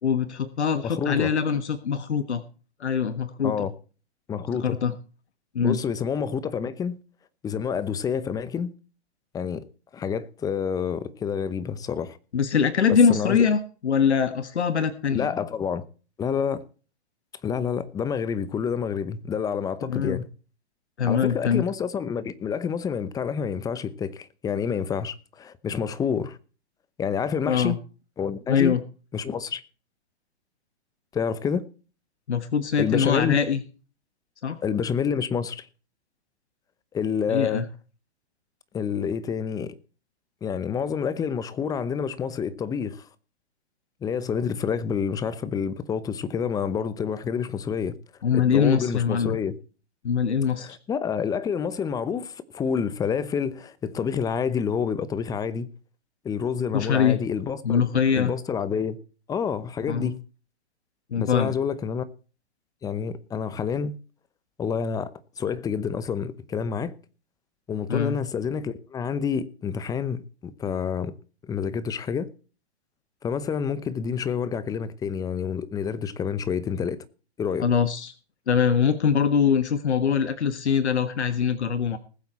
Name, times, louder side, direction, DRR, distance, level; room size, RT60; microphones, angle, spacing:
voice 1, 0.0-2.4 2.8-3.7 4.6-4.9 5.5-5.8 12.3-15.3 19.8-20.2 21.0-21.6 27.5-27.8 28.5-28.8 32.3-33.6 34.4-34.6 37.3-37.6 48.2-49.4 50.0-50.8 56.7-57.2 57.6-58.3 59.9-60.1 61.1-61.5 67.9-68.2 77.6-78.1 78.5-82.0, left 7 dB, 85° left, 1.5 m, -23 dB
voice 2, 0.8-1.3 3.4-3.7 4.3-4.8 5.6-7.0 7.4-8.7 9.3-9.6 9.9-12.2 12.9-13.4 15.1-15.8 16.2-16.6 17.4-20.3 21.1-26.4 27.0-27.8 28.2-28.8 29.1-29.6 31.1-31.6 32.8-33.4 34.6-35.7 36.9-37.6 38.7-39.7 40.4-43.0 44.0-48.0 48.3-49.6 50.6-55.7 56.2-57.8 58.1-59.0 59.3-60.2 61.2-62.1 62.8-64.0 64.6-65.1 65.4-66.9 67.7-71.1 71.4-72.3 73.2-77.1 77.4-77.7, left 7 dB, 10° left, 0.8 m, -28 dB
20.0 x 7.9 x 4.3 m
hypercardioid pair, 135°, 33 cm